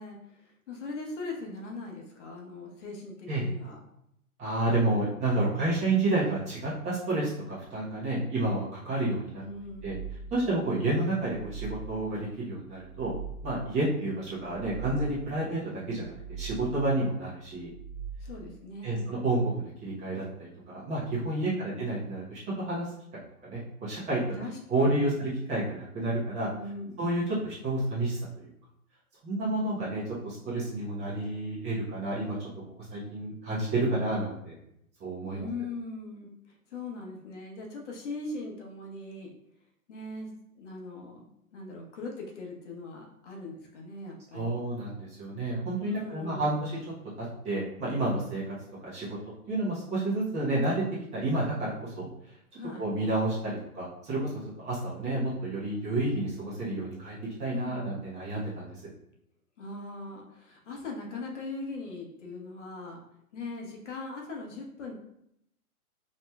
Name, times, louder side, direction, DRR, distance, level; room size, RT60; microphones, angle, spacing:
voice 1, 0.0-3.8 9.3-10.0 18.2-19.1 21.4-21.7 24.4-25.1 26.5-27.0 35.3-39.3 39.9-40.3 40.5-44.6 45.8-46.6 52.5-52.9 57.5-57.9 59.6-63.0 63.3-64.9, left 3 dB, 55° left, 0 dB, 1.1 m, -40 dB
voice 2, 4.4-9.4 9.8-10.0 10.3-13.1 13.4-17.7 18.8-22.9 23.4-24.4 24.7-26.5 27.0-28.5 29.2-32.5 32.8-34.5 35.0-35.5 44.3-46.7 47.2-48.5 48.8-49.2 49.5-50.8 51.1-52.1 52.8-58.8, right 2 dB, 15° right, -8 dB, 1.0 m, -30 dB
sound 1, 9.5-10.6 11.1-12.2 12.7-13.8 14.3-15.4 15.9-16.9 17.5-18.6, right 6 dB, 25° left, 0.3 m, -42 dB
5.0 x 3.0 x 2.3 m, 0.76 s
hypercardioid pair, 145°, 44 cm